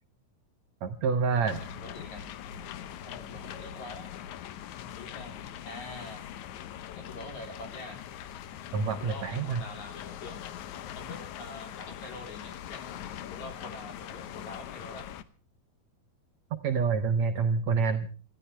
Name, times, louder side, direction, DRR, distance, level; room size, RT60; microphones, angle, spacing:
voice 1, 0.8-1.6 8.7-9.6 16.6-18.1, right 5 dB, 85° right, 8 dB, 1.5 m, -27 dB
voice 2, 1.3-2.3 3.1-4.1 4.7-5.4 5.6-6.2 7.0-8.0 9.0-10.4 10.9-15.1, left 2 dB, 45° left, 4 dB, 4.7 m, -45 dB
sound 1, 1.5-15.2, left 10 dB, 80° left, 1.7 m, -42 dB
26.5 x 15.5 x 3.3 m, 0.37 s
omnidirectional pair, 4.7 m